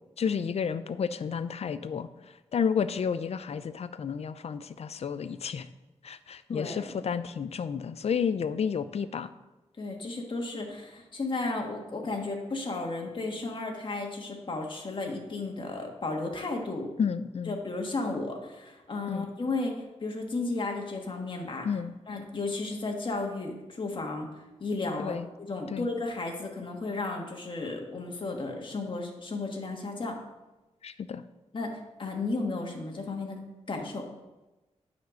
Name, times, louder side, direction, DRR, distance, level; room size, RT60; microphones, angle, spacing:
voice 1, 0.2-2.1 2.5-5.7 6.0-9.3 17.0-17.6 19.1-19.3 21.6-21.9 25.0-25.3 25.7-25.9 30.8-31.2, left 6 dB, 60° left, 13 dB, 0.5 m, -31 dB
voice 2, 6.5-6.9 9.8-16.9 17.5-21.7 22.1-24.3 24.6-30.2 31.5-33.4 33.7-34.1, left 3 dB, 45° left, 1 dB, 1.6 m, -34 dB
9.5 x 4.4 x 6.3 m, 1.1 s
wide cardioid pair, 85°, 12 cm